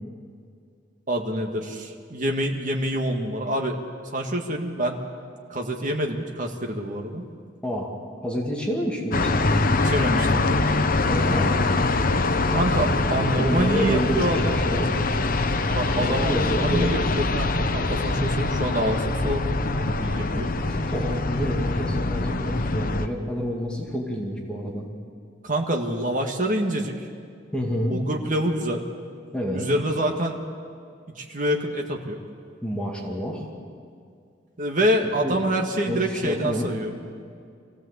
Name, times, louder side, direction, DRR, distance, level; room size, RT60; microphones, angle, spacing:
voice 1, 1.1-3.8 4.1-5.0 5.5-7.2 9.8-10.6 12.5-14.6 15.7-20.5 25.4-26.9 27.9-28.8 29.5-30.4 31.2-32.2 34.6-36.9, right 1 dB, 45° right, 2 dB, 1.8 m, -26 dB
voice 2, 8.2-9.4 11.1-11.6 12.8-14.9 16.0-16.9 20.6-24.9 27.5-28.0 29.3-29.7 32.6-33.5 35.2-35.4 35.9-36.7, equal, 5° left, -2 dB, 2.3 m, -29 dB
sound 1, 9.1-23.1, left 3 dB, 50° left, 0.9 m, -24 dB
24.5 x 16.5 x 8.1 m, 2.4 s
head